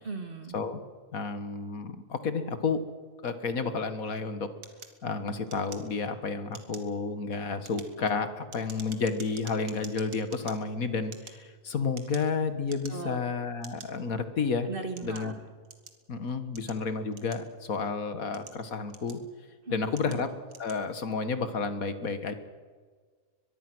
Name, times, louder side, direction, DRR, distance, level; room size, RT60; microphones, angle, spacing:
voice 1, 0.0-0.6 12.9-13.2 14.7-15.3 19.7-20.2, right 3 dB, 35° right, 5 dB, 2.5 m, -38 dB
voice 2, 1.1-2.8 3.2-4.5 5.0-14.7 15.0-15.3 16.1-19.2 19.7-20.3 20.6-22.3, left 4 dB, 65° left, 10 dB, 2.1 m, -31 dB
sound 1, 4.6-6.2 6.5-6.9 7.5-10.6 11.0-12.3 12.6-13.2 13.6-13.9 14.5-16.0 16.5-17.7 18.2-19.4 19.9-20.2 20.5-20.8, right 5 dB, 85° right, 2.5 m, -48 dB
23.0 x 22.0 x 6.3 m, 1.6 s
omnidirectional pair, 1.6 m